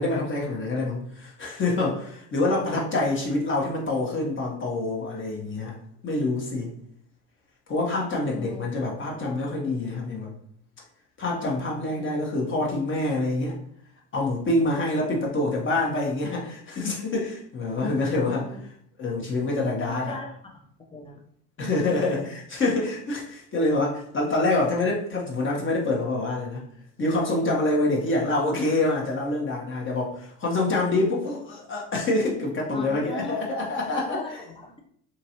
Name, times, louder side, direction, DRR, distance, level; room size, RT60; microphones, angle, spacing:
voice 1, 0.0-5.8 6.0-6.7 7.7-10.3 11.2-13.6 14.1-18.7 19.0-20.2 21.6-26.7 27.0-34.4, left 2 dB, 30° left, -2 dB, 1.2 m, -26 dB
voice 2, 8.3-8.7 11.9-12.2 18.5-18.6 19.8-20.6 20.9-21.2 21.6-22.2 32.7-33.4 33.8-34.8, left 2 dB, 15° left, 1 dB, 0.8 m, -38 dB
2.9 x 2.6 x 2.9 m, 0.65 s
hypercardioid pair, 85°, 42 cm